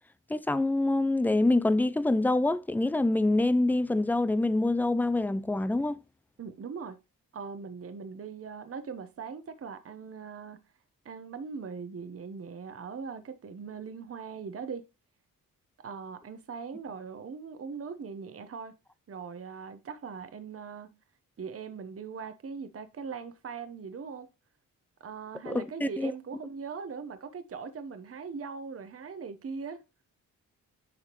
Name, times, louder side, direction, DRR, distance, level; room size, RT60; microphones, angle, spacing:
voice 1, 0.3-6.0 25.5-26.1, left 2 dB, 5° left, 0.3 m, -26 dB
voice 2, 6.4-7.0 7.3-10.6 11.0-14.8 15.8-18.8 19.1-20.9 21.4-24.3 25.0-29.8, right 5 dB, 40° right, 0.9 m, -40 dB
11.0 x 3.6 x 3.0 m
cardioid pair, 85°, 36 cm